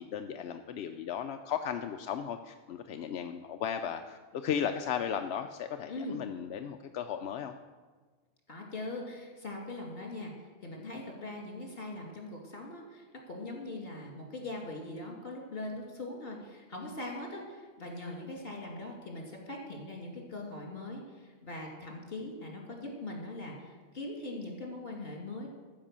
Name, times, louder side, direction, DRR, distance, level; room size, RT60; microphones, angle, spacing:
voice 1, 0.0-7.6, left 8 dB, 65° left, 6 dB, 0.7 m, -35 dB
voice 2, 8.5-25.5, left 2 dB, 45° left, 1 dB, 2.5 m, -41 dB
13.5 x 5.4 x 7.4 m, 1.4 s
omnidirectional pair, 1.4 m